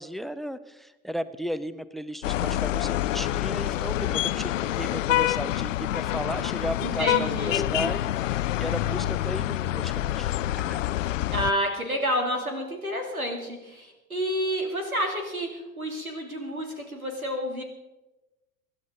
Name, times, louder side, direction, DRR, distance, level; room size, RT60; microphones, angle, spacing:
voice 1, 0.0-10.8, equal, ahead, 15 dB, 0.6 m, -35 dB
sound 1, 2.2-11.5, left 14 dB, 65° left, 0.6 m, -27 dB
voice 2, 6.8-7.7 11.3-17.6, equal, 85° right, 3 dB, 3.0 m, -29 dB
24.5 x 11.5 x 3.9 m, 1.0 s
figure-of-eight pair, 80°, 41 cm